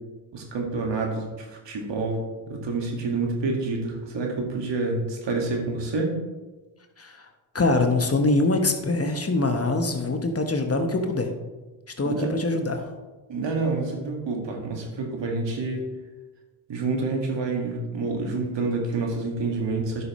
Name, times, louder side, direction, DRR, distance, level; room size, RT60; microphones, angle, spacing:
voice 1, 0.3-6.2 12.0-12.3 13.3-15.9 16.7-20.0, right 3 dB, 65° right, 1 dB, 2.0 m, -28 dB
voice 2, 7.5-11.3 12.0-12.9, left 2 dB, 30° left, 5 dB, 1.2 m, -24 dB
11.0 x 6.2 x 3.1 m, 1.2 s
supercardioid pair, 50°, 47 cm